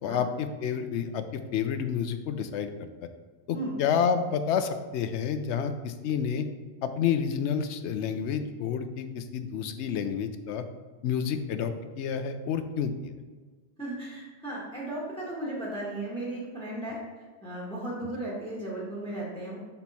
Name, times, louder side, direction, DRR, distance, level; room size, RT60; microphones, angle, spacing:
voice 1, 0.0-3.1 3.5-6.5 6.8-10.6 11.0-13.1, left 7 dB, 85° left, 9 dB, 0.9 m, -29 dB
voice 2, 13.8-17.0 17.4-19.6, right 1 dB, 5° left, -6 dB, 1.4 m, -35 dB
6.1 x 4.4 x 4.2 m, 1.4 s
omnidirectional pair, 1.1 m